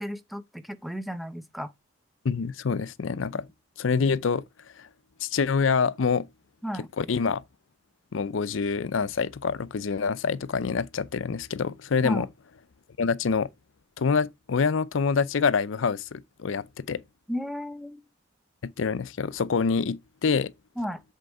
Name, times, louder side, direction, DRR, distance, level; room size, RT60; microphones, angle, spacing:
voice 1, 0.0-1.7 6.6-6.9 12.0-12.3 17.3-18.0 20.8-21.0, equal, ahead, 0.6 m, -33 dB
voice 2, 2.2-3.5 3.8-4.4 4.8-4.9 5.2-6.3 7.0-7.4 8.1-12.3 13.0-13.5 14.0-17.0 18.6-20.5, left 5 dB, 70° left, 0.5 m, -26 dB
7.7 x 4.5 x 4.6 m
head